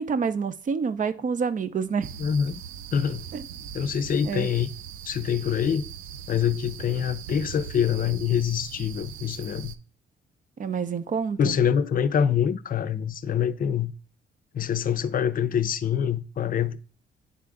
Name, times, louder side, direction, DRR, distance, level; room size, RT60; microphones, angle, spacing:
voice 1, 0.0-2.1 3.3-3.4 4.2-4.5 10.6-11.6, right 6 dB, 40° right, 0.7 m, -27 dB
sound 1, 2.0-9.8, right 8 dB, 90° right, 0.5 m, -40 dB
voice 2, 2.2-2.6 2.9-3.2 3.7-4.7 5.0-5.9 6.3-9.8 11.4-13.9 14.5-16.8, left 8 dB, 45° left, 0.5 m, -25 dB
9.9 x 3.6 x 3.6 m
cardioid pair, 90°, 20 cm